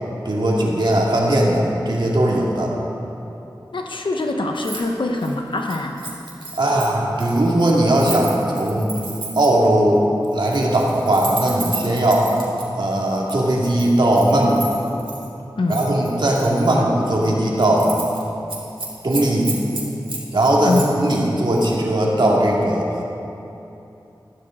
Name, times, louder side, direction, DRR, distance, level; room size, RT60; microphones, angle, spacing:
voice 1, 0.3-2.7 6.5-8.9 9.3-10.0 10.3-12.3 12.7-14.7 15.7-18.0 19.0-19.5 20.3-22.9, right 1 dB, 70° right, -3 dB, 2.2 m, -18 dB
voice 2, 3.7-6.0 15.6-15.9 20.6-20.9, left 2 dB, 80° left, 3 dB, 1.1 m, -23 dB
Keys jangling, 4.6-4.8 5.1-9.6 10.3-12.6 13.3-15.3 15.7-16.7 17.1-17.3 17.6-18.2 18.5-21.2 21.6-21.7, right 3 dB, 85° right, 2.2 m, -33 dB
13.0 x 12.5 x 3.8 m, 2.8 s
wide cardioid pair, 50°, 8 cm